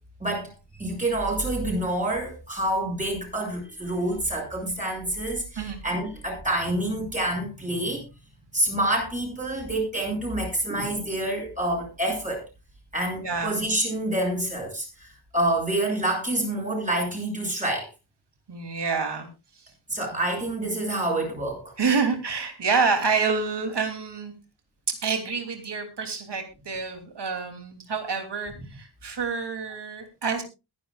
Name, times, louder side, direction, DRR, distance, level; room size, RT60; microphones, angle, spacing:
voice 1, 0.2-8.1 8.5-12.4 12.9-17.9 19.9-21.7, right 1 dB, 15° right, -1 dB, 6.9 m, -27 dB
voice 2, 13.2-13.6 18.5-19.3 21.8-24.3 24.9-30.4, right 5 dB, 60° right, 6 dB, 3.0 m, -27 dB
21.5 x 10.5 x 2.4 m, 0.27 s
wide cardioid pair, 145°, 47 cm